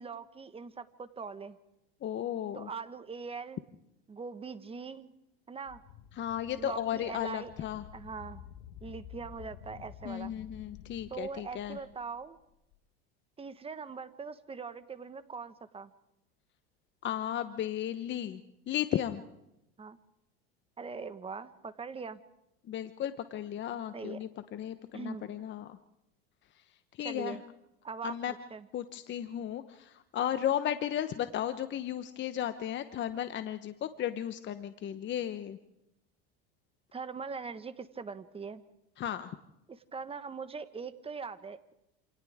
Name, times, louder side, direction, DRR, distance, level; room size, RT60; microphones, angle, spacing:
voice 1, 0.0-1.6 2.5-3.6 4.1-5.1 5.5-5.8 6.6-7.7 7.9-8.4 8.8-10.3 11.1-12.4 13.4-15.9 19.8-20.0 20.8-22.2 23.9-24.2 24.9-25.2 27.0-27.4 27.8-28.7 36.9-38.6 39.7-41.7, right 5 dB, 20° right, 11 dB, 1.5 m, -41 dB
voice 2, 2.0-2.7 6.1-7.8 10.0-11.8 17.0-19.2 22.7-25.8 26.9-27.4 28.0-28.3 28.7-35.6 39.0-39.4, left 10 dB, 35° left, 10 dB, 1.1 m, -35 dB
sound 1, 5.7-12.8, left 10 dB, 50° left, 1.4 m, -51 dB
28.0 x 27.5 x 3.7 m, 0.86 s
supercardioid pair, 105°, 31 cm